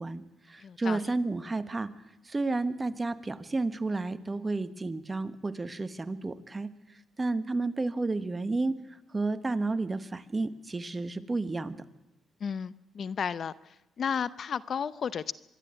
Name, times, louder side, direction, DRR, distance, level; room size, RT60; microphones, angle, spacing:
voice 1, 0.0-1.9 2.2-11.8, right 3 dB, 25° right, 11 dB, 1.3 m, -32 dB
voice 2, 0.6-1.0 12.4-13.5 14.0-15.3, left 7 dB, 55° left, 17 dB, 0.6 m, -33 dB
25.0 x 12.0 x 8.9 m, 0.96 s
cardioid pair, 90°, 0 cm